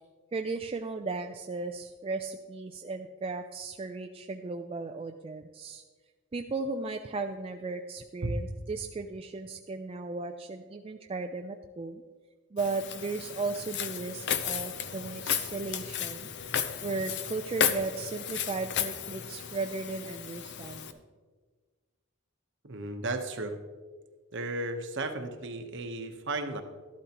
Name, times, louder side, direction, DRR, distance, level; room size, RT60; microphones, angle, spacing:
voice 1, 0.3-5.8 6.3-12.0 12.5-16.3 16.8-20.9, right 3 dB, 25° right, 4 dB, 0.3 m, -36 dB
Walk footsteps, 12.6-20.9, left 8 dB, 50° left, 0.6 m, -34 dB
voice 2, 22.6-23.5 24.3-26.6, right 2 dB, 55° right, 6 dB, 1.0 m, -34 dB
13.0 x 11.5 x 2.9 m, 1.5 s
head